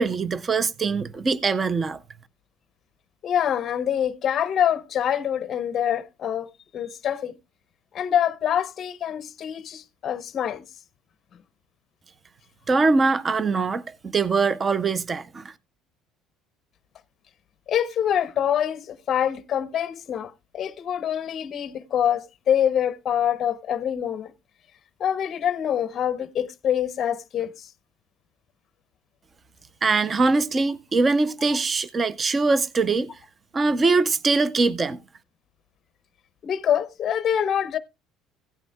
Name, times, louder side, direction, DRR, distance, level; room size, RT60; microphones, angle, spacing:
voice 1, 0.0-2.0 12.7-15.5 29.8-33.1 33.5-35.0, right 3 dB, 20° right, 0.5 m, -22 dB
voice 2, 3.2-6.5 6.7-7.4 7.9-10.7 17.7-24.3 25.0-27.7 31.5-31.6 36.4-37.8, left 9 dB, 35° left, 0.6 m, -25 dB
16.0 x 9.1 x 2.2 m
cardioid pair, 165°, 0 cm